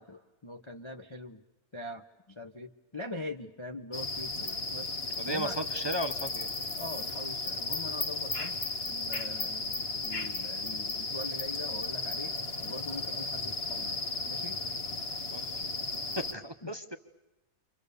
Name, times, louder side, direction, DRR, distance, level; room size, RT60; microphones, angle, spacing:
voice 1, 0.0-1.4 1.7-4.9 5.3-5.6 6.8-8.6 8.9-12.3 12.6-14.6 16.6-16.8, left 2 dB, 25° left, 3 dB, 0.8 m, -43 dB
sound 1, 3.9-16.3, left 3 dB, 40° left, 1.8 m, -35 dB
voice 2, 5.2-6.5 15.3-15.6 16.2-17.0, right 1 dB, 20° right, 8 dB, 0.7 m, -35 dB
29.5 x 25.0 x 6.9 m, 1.1 s
omnidirectional pair, 1.7 m